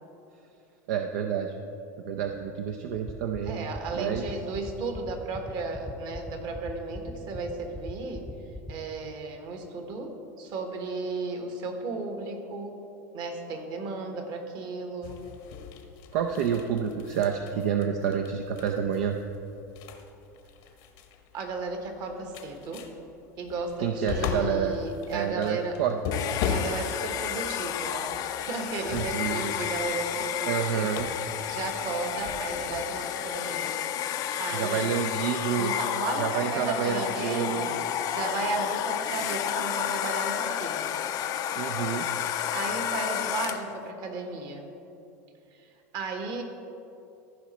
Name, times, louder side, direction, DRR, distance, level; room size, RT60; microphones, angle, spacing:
voice 1, 0.9-1.5 2.0-3.6 3.9-4.2 16.1-19.2 23.8-24.8 25.1-26.0 28.9-29.4 30.5-31.1 34.5-35.7 36.2-37.7 41.6-42.1, right 8 dB, 70° right, 4 dB, 0.6 m, -28 dB
sound 1, 3.0-8.9, equal, 5° right, 0.8 m, -38 dB
voice 2, 3.4-8.3 8.7-10.1 10.4-12.8 13.1-15.2 21.3-22.9 23.4-25.8 26.4-28.1 28.4-31.1 31.5-34.9 35.5-41.0 42.1-44.7 45.5-46.4, right 3 dB, 50° right, 4 dB, 1.4 m, -35 dB
sound 2, 15.0-33.0, left 7 dB, 65° left, 1.0 m, -39 dB
Domestic sounds home sounds, 26.1-43.8, left 10 dB, 45° left, 0.5 m, -31 dB
14.5 x 5.0 x 4.2 m, 2.9 s
hypercardioid pair, 95°, 9 cm